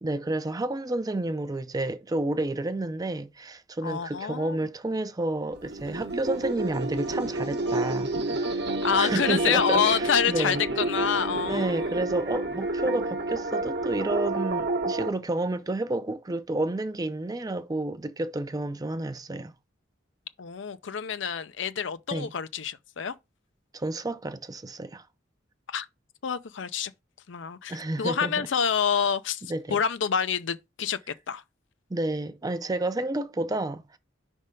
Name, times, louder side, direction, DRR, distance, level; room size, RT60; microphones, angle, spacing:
voice 1, 0.0-8.6 9.0-10.6 11.4-19.5 22.1-22.3 23.7-25.0 27.7-28.5 29.5-29.8 31.9-34.0, right 2 dB, 20° right, 0.4 m, -30 dB
voice 2, 3.8-4.6 8.8-12.0 20.4-23.1 25.7-25.9 26.2-26.9 27.3-29.4 29.7-31.4, left 7 dB, 70° left, 0.5 m, -27 dB
sound 1, 5.5-15.1, right 2 dB, 60° right, 0.9 m, -29 dB
5.4 x 3.5 x 5.2 m
head